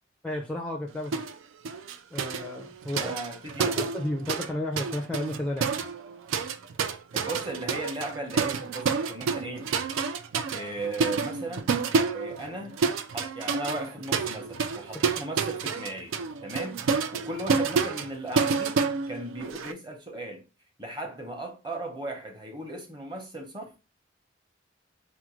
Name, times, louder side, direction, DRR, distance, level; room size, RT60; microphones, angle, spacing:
voice 1, 0.2-1.2 2.1-3.2 3.6-5.7, left 1 dB, 5° left, 0.4 m, -32 dB
sound 1, 1.1-1.4 1.6-4.5 4.8-19.7, right 5 dB, 85° right, 0.4 m, -29 dB
voice 2, 2.9-3.7 7.1-9.7 10.5-11.7 12.1-12.8 13.1-16.1 16.4-16.8 17.1-20.4 20.8-23.7, right 2 dB, 25° right, 0.8 m, -37 dB
4.1 x 2.5 x 3.0 m
head